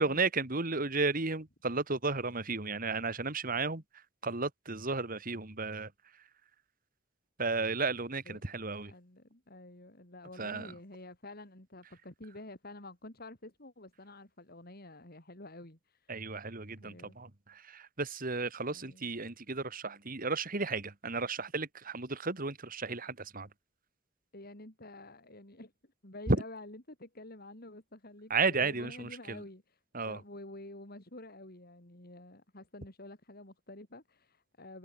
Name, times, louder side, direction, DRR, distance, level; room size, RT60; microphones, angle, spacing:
voice 1, 0.0-3.8 4.2-5.9 7.4-8.9 10.4-10.7 16.1-23.5 26.3-26.4 28.3-29.4 29.9-30.2, right 3 dB, 45° right, 2.2 m, -33 dB
voice 2, 8.8-16.2 16.8-17.2 18.7-19.1 24.3-29.8 30.1-34.8, left 2 dB, 50° left, 3.9 m, -49 dB
head